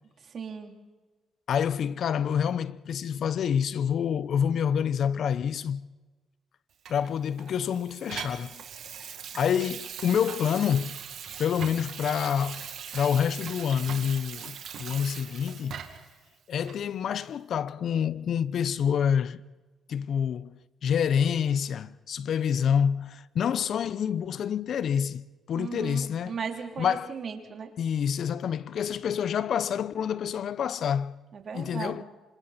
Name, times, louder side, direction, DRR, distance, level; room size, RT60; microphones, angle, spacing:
voice 1, 0.2-0.7 25.5-27.7 31.3-32.0, right 6 dB, 50° right, 3.2 m, -37 dB
voice 2, 1.5-5.8 6.9-8.6 9.3-11.0 11.4-12.7 12.9-15.8 16.5-19.4 19.9-20.5 20.8-26.4 26.8-27.1 27.8-31.2 31.5-32.0, left 8 dB, 65° left, 0.7 m, -27 dB
Water tap faucet / Sink (filling or washing), 6.8-16.1 16.6-16.8, right 8 dB, 70° right, 2.2 m, -40 dB
27.0 x 26.0 x 4.3 m
cardioid pair, 90°, 0 cm